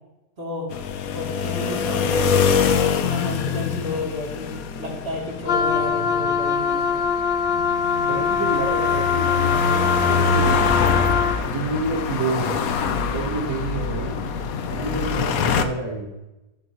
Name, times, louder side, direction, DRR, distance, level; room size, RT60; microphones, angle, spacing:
voice 1, 0.4-0.7 1.1-7.0, left 2 dB, 35° right, -3 dB, 3.4 m, -32 dB
sound 1, 0.7-15.7, left 6 dB, 60° left, 1.1 m, -25 dB
Wind instrument woodwind instrument, 5.4-11.4, left 6 dB, 80° left, 0.5 m, -22 dB
voice 2, 8.0-10.6 11.4-12.6 13.1-14.2 14.7-16.1, right 3 dB, 85° right, -1 dB, 3.2 m, -28 dB
14.5 x 8.0 x 3.1 m, 1.0 s
omnidirectional pair, 1.9 m